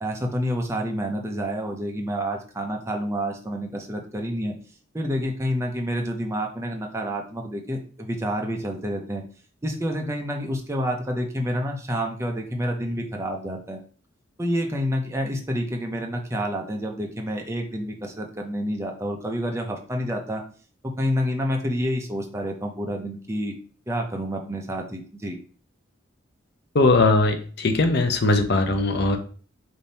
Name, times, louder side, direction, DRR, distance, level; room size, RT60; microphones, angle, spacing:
voice 1, 0.0-4.5 4.9-9.2 9.6-13.8 14.4-20.4 20.8-23.5 23.9-25.4, equal, 15° right, 2 dB, 0.6 m, -28 dB
voice 2, 26.7-29.2, left 2 dB, 55° left, 6 dB, 0.6 m, -20 dB
3.5 x 2.8 x 4.1 m, 0.40 s
head